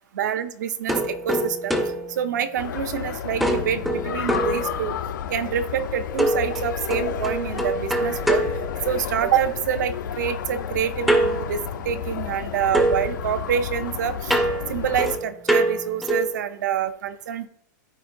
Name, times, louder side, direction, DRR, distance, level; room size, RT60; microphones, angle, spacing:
voice 1, 0.1-1.8 2.1-5.0 5.3-8.4 8.9-14.4 14.7-17.5, right 8 dB, 70° right, 10 dB, 0.6 m, -26 dB
sound 1, 0.9-3.0 3.4-5.2 6.2-9.4 11.1-12.5 12.7-16.4, right 1 dB, ahead, 0.4 m, -26 dB
sound 2, 2.6-15.2, left 8 dB, 90° left, 0.7 m, -31 dB
13.0 x 4.4 x 2.6 m, 0.67 s
supercardioid pair, 175°, 10 cm